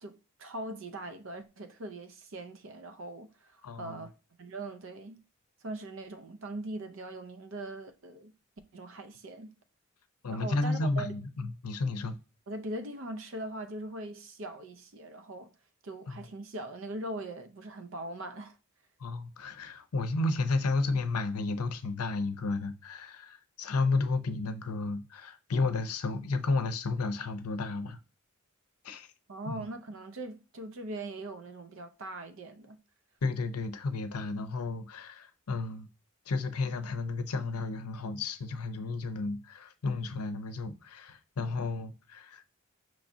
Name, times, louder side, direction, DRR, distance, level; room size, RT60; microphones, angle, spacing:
voice 1, 0.0-4.1 4.4-5.2 5.6-8.3 8.7-9.5 10.3-11.1 12.5-15.5 15.8-18.6 29.3-32.8, right 2 dB, 60° right, 0.5 m, -41 dB
voice 2, 3.6-4.0 10.2-12.2 16.1-16.2 19.0-28.0 28.8-29.1 29.5-29.6 33.2-35.9 36.3-42.4, left 3 dB, 85° left, 0.6 m, -32 dB
6.0 x 3.0 x 2.6 m
head